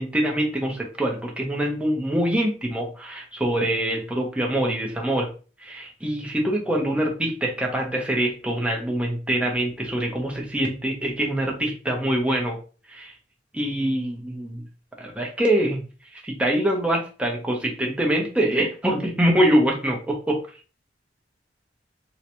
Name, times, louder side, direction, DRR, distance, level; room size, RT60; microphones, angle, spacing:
voice 1, 0.0-5.3 5.6-12.6 12.9-13.1 13.5-14.6 15.0-15.8 16.2-20.4, right 1 dB, 5° right, -1 dB, 0.7 m, -24 dB
3.8 x 2.2 x 2.9 m, 0.35 s
head